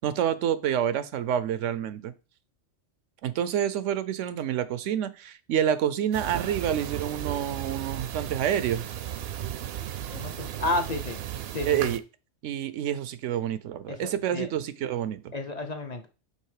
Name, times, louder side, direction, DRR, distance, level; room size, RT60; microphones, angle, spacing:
voice 1, 0.0-2.1 3.2-8.9 11.7-12.0 12.4-15.3, right 10 dB, 85° right, 1.0 m, -28 dB
sound 1, 6.1-12.0, right 10 dB, 65° right, 0.7 m, -35 dB
voice 2, 10.1-11.2 11.5-11.9 13.9-14.0 14.3-14.5 15.3-16.1, left 2 dB, 40° left, 0.7 m, -31 dB
5.6 x 3.7 x 4.8 m
omnidirectional pair, 1.2 m